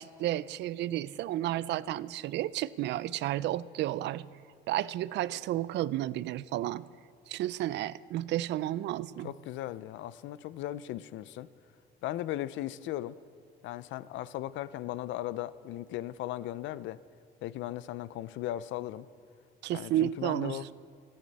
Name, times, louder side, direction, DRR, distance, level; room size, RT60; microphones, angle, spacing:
voice 1, 0.0-4.3 4.7-6.9 7.3-9.3 19.6-20.6, right 13 dB, 65° right, 18 dB, 0.4 m, -32 dB
voice 2, 9.2-11.5 12.0-13.2 13.6-17.0 17.4-19.1 19.7-20.7, left 14 dB, 80° left, 17 dB, 0.5 m, -37 dB
29.5 x 10.5 x 4.1 m, 2.2 s
cardioid pair, 155°, 19 cm